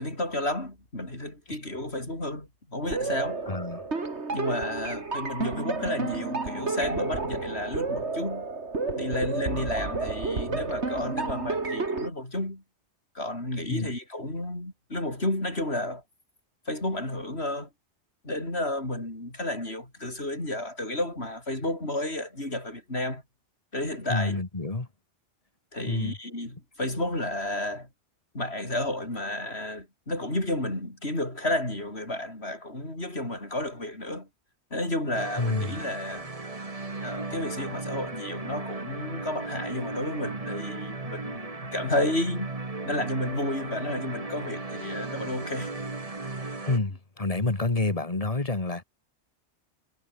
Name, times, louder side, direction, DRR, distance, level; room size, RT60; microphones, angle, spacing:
voice 1, 0.0-3.4 4.3-8.5 8.9-12.6 13.2-16.0 16.7-17.7 18.2-23.2 23.7-24.4 25.7-27.9 28.3-34.3 34.7-36.3 37.0-42.5 42.8-45.7, left 1 dB, 70° left, 7.2 m, -32 dB
sound 1, 2.8-12.1, right 3 dB, 90° right, 3.0 m, -31 dB
voice 2, 3.5-3.8 13.7-13.9 24.1-24.9 25.9-26.2 35.4-35.7 46.7-48.8, left 3 dB, 35° left, 2.0 m, -28 dB
sound 2, 35.1-46.8, right 3 dB, 30° right, 1.8 m, -36 dB
omnidirectional pair, 1.1 m